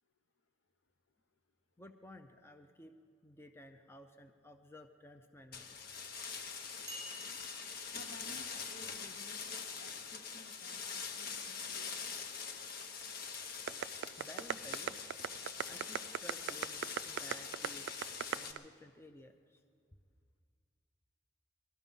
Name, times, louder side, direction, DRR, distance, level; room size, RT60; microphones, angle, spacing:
voice 1, 1.8-5.8 14.2-15.0 15.6-18.0 18.3-19.6, left 1 dB, 15° left, 6 dB, 0.5 m, -55 dB
sound 1, 5.5-18.5, left 6 dB, 55° left, 1.0 m, -44 dB
sound 2, 6.9-10.5 15.2-15.3, right 1 dB, 20° right, 1.2 m, -54 dB
voice 2, 7.9-12.2, left 1 dB, 85° left, 4 dB, 0.8 m, -56 dB
sound 3, 13.7-18.6, right 9 dB, 65° right, 0.3 m, -37 dB
20.0 x 12.5 x 5.4 m, 2.1 s
head